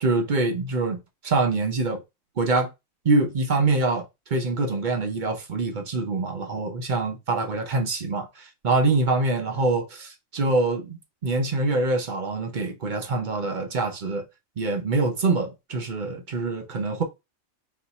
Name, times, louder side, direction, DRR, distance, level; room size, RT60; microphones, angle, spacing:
voice 1, 0.0-2.0 2.4-2.7 3.0-14.3 14.6-17.0, right 3 dB, 45° right, 0.7 m, -25 dB
4.1 x 2.5 x 4.1 m
omnidirectional pair, 1.4 m